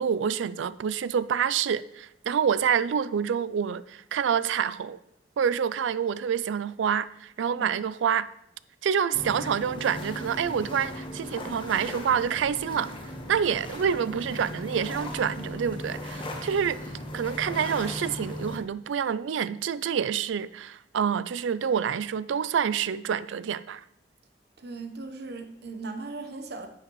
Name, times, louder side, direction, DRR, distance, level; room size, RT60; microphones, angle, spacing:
voice 1, 0.0-5.0 5.4-8.3 8.8-12.9 13.3-16.8 17.1-23.8, right 7 dB, 90° right, 0.4 m, -27 dB
sound 1, 9.1-18.6, left 1 dB, 30° left, 1.2 m, -37 dB
voice 2, 24.6-26.7, right 3 dB, 60° right, 1.0 m, -38 dB
10.0 x 7.9 x 3.1 m
head